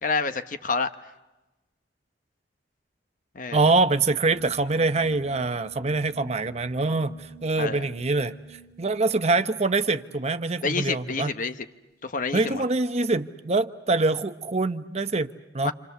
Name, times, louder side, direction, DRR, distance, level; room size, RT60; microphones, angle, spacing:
voice 1, 0.0-0.9 3.3-3.7 7.6-7.9 10.6-11.6 12.0-12.6 15.6-15.7, left 4 dB, 50° left, 10 dB, 1.0 m, -28 dB
voice 2, 3.5-8.3 8.8-11.3 12.3-15.7, right 3 dB, 40° right, 10 dB, 0.8 m, -24 dB
sound 1, 4.3-11.8, right 5 dB, 70° left, 2.6 m, -51 dB
27.5 x 27.5 x 6.8 m, 1.0 s
head